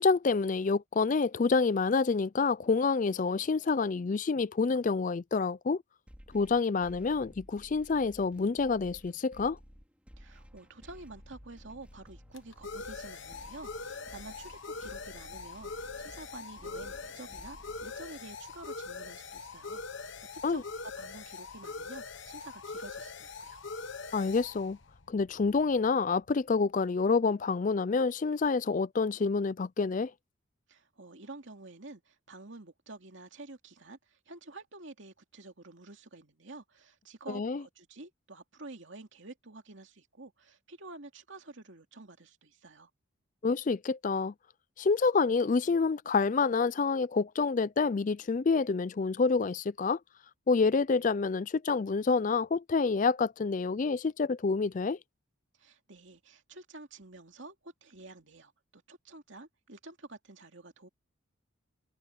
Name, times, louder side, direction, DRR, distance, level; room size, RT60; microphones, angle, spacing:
voice 1, 0.0-5.8 6.3-9.6 20.4-20.6 24.1-24.8 25.1-30.1 37.3-37.6 43.4-44.3 44.8-50.0 50.5-55.0, left 4 dB, 35° left, 0.4 m, -28 dB
sound 1, 6.1-18.1, equal, 5° right, 4.1 m, -54 dB
voice 2, 10.2-23.6 30.7-42.9 55.6-60.9, right 2 dB, 60° right, 2.6 m, -49 dB
sound 2, 10.7-26.1, left 4 dB, 60° left, 1.2 m, -43 dB
head